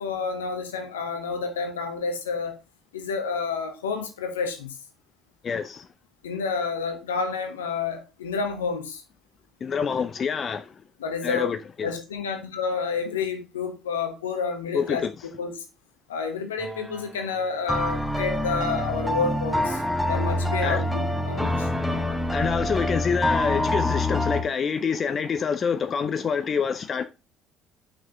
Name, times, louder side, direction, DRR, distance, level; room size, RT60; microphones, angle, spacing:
voice 1, 0.0-2.6 2.9-4.8 6.2-9.0 11.0-11.6 11.8-15.0 15.4-15.6 16.1-22.0, left 5 dB, 75° left, 1.4 m, -29 dB
voice 2, 5.4-5.9 9.6-10.7 11.2-11.9 14.7-15.1 20.6-20.8 22.3-27.0, left 6 dB, 40° left, 0.7 m, -26 dB
sound 1, 16.6-17.1 17.7-24.4, left 1 dB, 5° right, 2.5 m, -26 dB
8.2 x 6.1 x 3.8 m
figure-of-eight pair, 55°, 0 cm